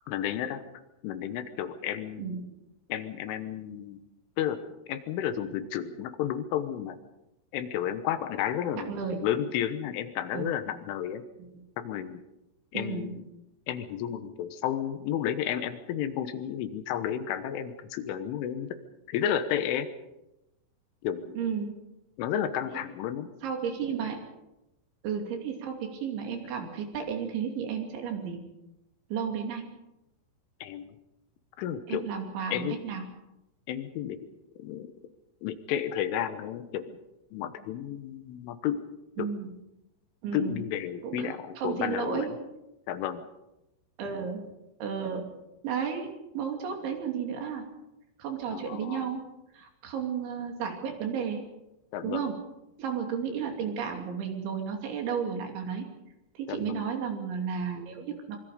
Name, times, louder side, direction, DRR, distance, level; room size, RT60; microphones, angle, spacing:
voice 1, 0.1-0.7 1.0-2.2 2.9-4.0 4.4-4.6 4.9-7.0 7.5-8.9 9.2-11.2 11.8-12.2 12.7-13.2 13.7-18.7 19.1-19.9 21.0-21.3 22.2-23.3 30.6-30.9 31.6-32.0 32.5-32.8 33.7-34.2 34.6-34.9 35.4-37.0 37.3-38.9 39.2-39.3 40.3-42.3 42.9-43.2 48.5-49.1 51.9-52.3 56.5-56.9, left 10 dB, 80° left, 10 dB, 3.6 m, -32 dB
voice 2, 8.7-9.2 10.3-10.5 11.4-11.6 12.7-13.1 21.3-21.7 22.7-22.8 23.4-24.2 25.0-28.4 29.1-29.6 31.9-33.0 39.2-39.5 40.2-40.6 41.0-42.3 44.0-44.4 44.8-45.2 45.6-47.6 48.2-49.2 49.5-51.4 52.0-52.3 52.8-55.8 56.3-58.4, right 7 dB, 70° right, 3 dB, 5.1 m, -33 dB
25.5 x 24.0 x 5.1 m, 0.92 s
omnidirectional pair, 5.6 m